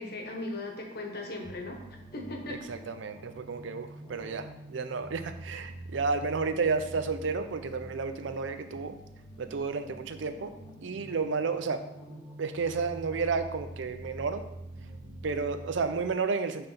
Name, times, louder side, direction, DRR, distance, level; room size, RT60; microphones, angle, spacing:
voice 1, 0.0-1.8 2.1-2.7, left 2 dB, 50° left, 2 dB, 1.1 m, -37 dB
sound 1, 1.4-16.1, right 1 dB, 10° left, 1.1 m, -46 dB
voice 2, 2.7-9.0 9.4-10.5 10.8-11.8 12.4-14.4 15.2-16.7, right 4 dB, 65° right, 9 dB, 0.5 m, -31 dB
5.7 x 3.4 x 5.8 m, 0.88 s
head